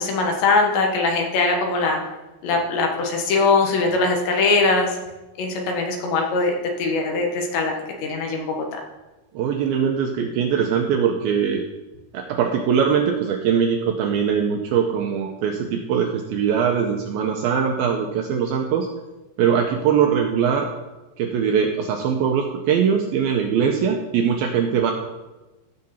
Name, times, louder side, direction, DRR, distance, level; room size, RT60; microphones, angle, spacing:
voice 1, 0.0-2.0 2.4-4.9 5.4-6.5 6.8-7.7 8.0-8.8, left 3 dB, 80° left, 2 dB, 3.7 m, -21 dB
voice 2, 9.3-11.6 12.1-18.9 19.4-20.7 21.2-24.9, right 7 dB, 80° right, 2 dB, 2.2 m, -21 dB
15.5 x 6.5 x 4.3 m, 1.1 s
omnidirectional pair, 5.0 m